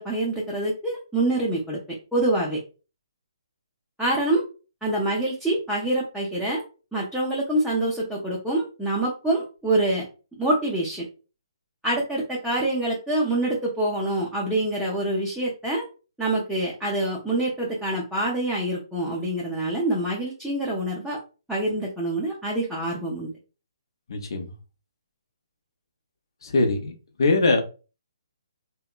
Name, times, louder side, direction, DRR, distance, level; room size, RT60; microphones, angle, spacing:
voice 1, 0.0-2.6 4.0-4.4 4.8-6.6 6.9-10.0 10.4-11.1 11.8-15.8 16.2-21.2 21.5-23.3, right 1 dB, ahead, -7 dB, 0.5 m, -26 dB
voice 2, 24.1-24.5 26.4-26.9 27.2-27.6, left 2 dB, 60° left, 4 dB, 0.7 m, -22 dB
2.7 x 2.2 x 2.3 m, 0.33 s
hypercardioid pair, 145°, 3 cm